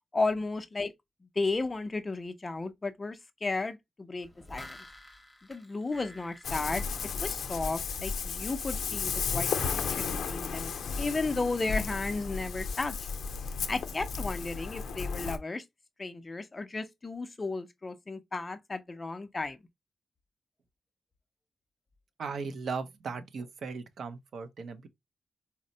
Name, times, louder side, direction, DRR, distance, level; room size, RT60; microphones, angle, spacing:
voice 1, 0.1-0.9 1.4-4.8 5.5-6.9 7.2-13.1 13.7-15.6 16.0-19.6, left 3 dB, 20° left, 0.4 m, -34 dB
sound 1, 4.2-7.8 8.1-8.2, left 1 dB, 5° left, 0.9 m, -50 dB
Ocean, 6.4-15.4, left 5 dB, 80° left, 0.5 m, -34 dB
voice 2, 22.2-24.9, right 5 dB, 60° right, 0.5 m, -37 dB
4.2 x 2.0 x 2.6 m
wide cardioid pair, 160°, 0 cm